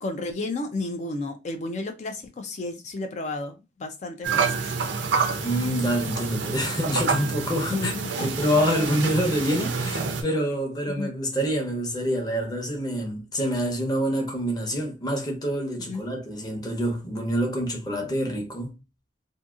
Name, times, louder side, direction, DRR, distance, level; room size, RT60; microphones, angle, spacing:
voice 1, 0.0-4.7 7.7-8.5 10.9-11.1 15.8-16.0, left 2 dB, 40° left, 0.4 m, -32 dB
sound 1, 4.2-10.2, right 5 dB, 85° right, 0.5 m, -28 dB
voice 2, 5.4-18.7, equal, 20° left, 0.8 m, -26 dB
2.7 x 2.6 x 2.4 m
head